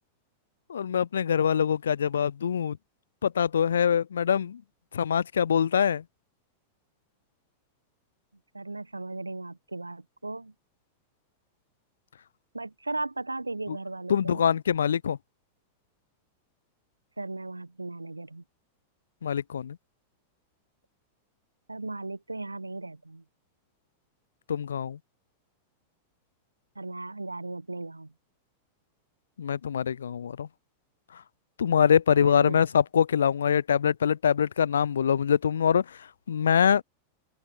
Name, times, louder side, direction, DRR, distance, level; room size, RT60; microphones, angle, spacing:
voice 1, 0.7-2.8 3.2-4.6 4.9-6.0 14.1-15.2 19.2-19.8 24.5-25.0 29.4-30.5 31.6-35.8 36.3-36.8, left 8 dB, 65° left, 0.4 m, -24 dB
voice 2, 8.5-10.5 12.5-14.5 17.2-18.4 21.7-23.2 26.7-28.1 32.1-32.6, right 2 dB, 85° right, 1.3 m, -36 dB
open air
figure-of-eight pair, 90°, 0 cm